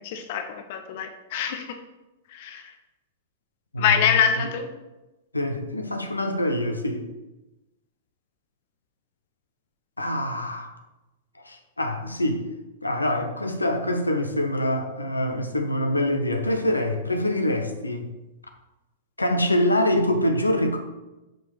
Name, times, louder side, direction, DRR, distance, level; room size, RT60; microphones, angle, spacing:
voice 1, 0.0-1.7 2.3-2.7 3.8-4.7, left 8 dB, 50° left, 7 dB, 0.7 m, -25 dB
voice 2, 3.7-4.1 4.4-4.5 5.3-7.1 10.0-10.7 11.4-12.4 12.8-18.1 19.2-20.8, left 1 dB, 85° left, 6 dB, 0.9 m, -25 dB
7.7 x 5.3 x 4.6 m, 1.0 s
figure-of-eight pair, 100°, 0 cm